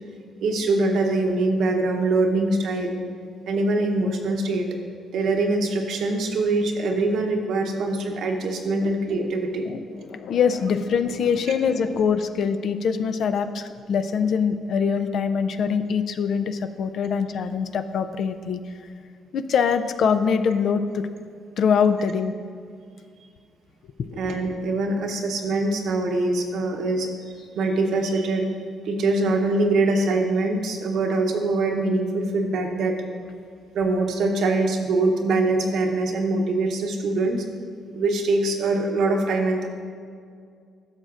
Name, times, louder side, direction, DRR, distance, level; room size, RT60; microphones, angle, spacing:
voice 1, 0.4-3.0 3.5-4.7 5.1-9.7 24.2-27.1 27.5-28.5 28.8-33.0 33.7-37.4 37.9-39.7, right 2 dB, 75° right, 3 dB, 0.9 m, -23 dB
voice 2, 9.6-18.6 19.3-21.1 21.6-22.3 24.1-24.2, left 6 dB, 65° left, 10 dB, 0.4 m, -23 dB
12.0 x 6.5 x 2.5 m, 2.2 s
cardioid pair, 90°, 0 cm